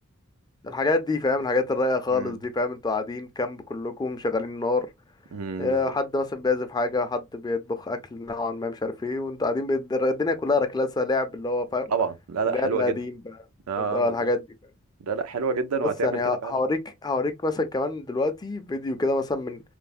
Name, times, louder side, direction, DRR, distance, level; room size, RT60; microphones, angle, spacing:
voice 1, 0.6-4.9 5.6-11.9 12.5-13.2 13.8-14.4 16.0-19.6, left 3 dB, 20° left, 0.4 m, -26 dB
voice 2, 5.3-5.9 11.9-13.0 13.7-14.3 15.0-16.5, right 5 dB, 85° right, 0.5 m, -28 dB
3.2 x 2.0 x 2.4 m
head